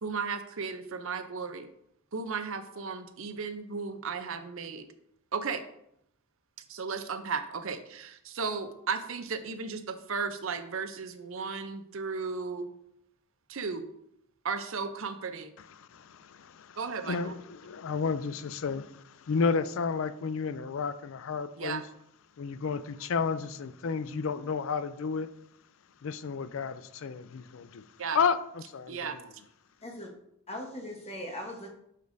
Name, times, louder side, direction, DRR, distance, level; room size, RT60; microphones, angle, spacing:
voice 1, 0.0-1.7 2.1-4.8 5.3-5.6 6.7-12.7 13.5-13.9 14.4-15.5 16.8-17.3 21.6-21.8 28.0-28.2 28.9-29.2, right 5 dB, 60° right, 9 dB, 0.6 m, -35 dB
voice 2, 15.6-16.8 17.0-21.8 22.4-25.3 26.0-27.8 28.1-29.3, left 5 dB, 60° left, 14 dB, 0.4 m, -32 dB
voice 3, 30.5-31.7, left 1 dB, 25° left, 1 dB, 1.2 m, -39 dB
8.3 x 6.6 x 2.6 m, 0.77 s
head